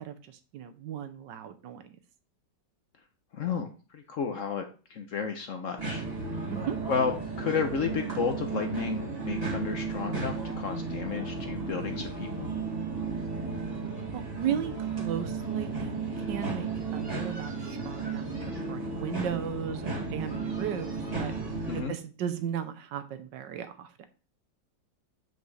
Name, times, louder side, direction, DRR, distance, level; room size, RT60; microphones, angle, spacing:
voice 1, 0.0-2.0 6.5-6.8 14.1-20.9 21.2-21.3 21.7-24.0, right 9 dB, 80° right, 9 dB, 1.5 m, -36 dB
voice 2, 3.3-6.0 6.9-7.1 7.4-12.5 21.7-21.9, left 6 dB, 60° left, 6 dB, 0.9 m, -32 dB
sound 1, 5.8-21.8, right 4 dB, 20° right, 2.1 m, -34 dB
8.0 x 5.2 x 3.3 m, 0.36 s
omnidirectional pair, 1.9 m